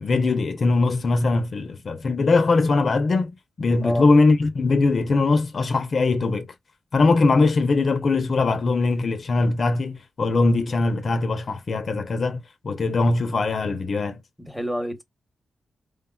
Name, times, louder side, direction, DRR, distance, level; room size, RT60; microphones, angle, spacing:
voice 1, 0.0-3.3 3.6-6.5 6.9-14.2, left 3 dB, 55° left, 0.5 m, -21 dB
voice 2, 14.4-15.0, equal, ahead, 1.0 m, -28 dB
3.4 x 2.1 x 2.3 m
cardioid pair, 65°, 0 cm